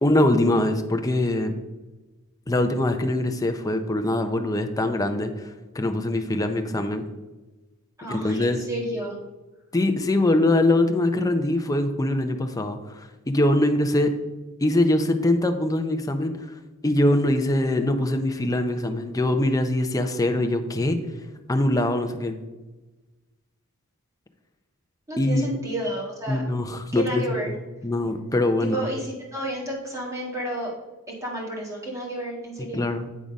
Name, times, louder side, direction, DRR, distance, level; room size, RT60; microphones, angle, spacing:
voice 1, 0.0-1.5 2.5-7.0 8.1-8.6 9.7-14.1 14.6-16.6 16.8-21.0 21.5-22.4 25.2-25.6 26.3-28.8 32.6-33.1, left 1 dB, 15° left, 6 dB, 0.5 m, -23 dB
voice 2, 8.0-9.2 25.1-26.4 26.9-27.5 28.6-30.7 31.2-32.8, right 1 dB, 15° right, -3 dB, 1.6 m, -31 dB
8.4 x 3.8 x 5.1 m, 1.1 s
head